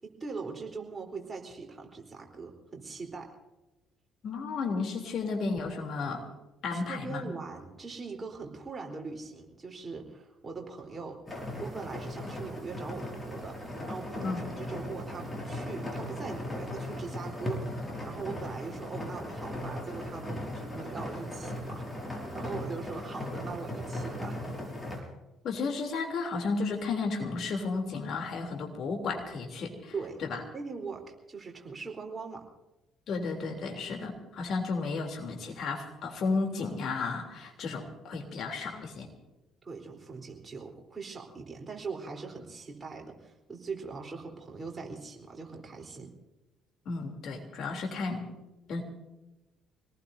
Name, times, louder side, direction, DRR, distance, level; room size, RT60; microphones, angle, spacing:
voice 1, 0.0-3.3 6.7-11.2 11.6-21.9 22.3-24.4 29.9-30.2 30.5-32.5 39.6-46.1, right 4 dB, 30° right, 1 dB, 4.0 m, -41 dB
voice 2, 4.2-6.2 6.6-7.3 14.2-14.4 25.4-29.7 30.2-30.4 33.1-39.1 46.8-48.2 48.7-48.8, left 4 dB, 55° left, 2 dB, 3.4 m, -33 dB
sound 1, 11.3-25.0, left 1 dB, 15° left, 6.0 m, -38 dB
25.5 x 19.0 x 2.8 m, 1.0 s
figure-of-eight pair, 50°, 0 cm